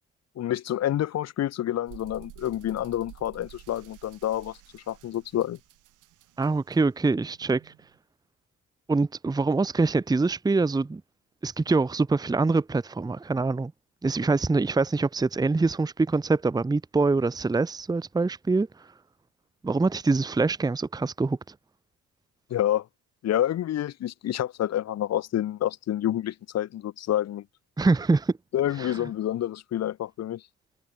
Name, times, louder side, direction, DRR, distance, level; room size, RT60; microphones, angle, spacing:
voice 1, 0.4-5.6 22.5-22.8 23.2-27.4 28.5-30.4, left 12 dB, 60° left, 0.8 m, -28 dB
sound 1, 1.9-8.0, right 15 dB, 85° right, 2.6 m, -51 dB
voice 2, 6.4-7.7 8.9-11.0 11.4-13.7 14.0-18.7 19.6-21.4 27.8-28.3 28.8-29.0, right 3 dB, 15° right, 0.7 m, -24 dB
cardioid pair, 90°, 30 cm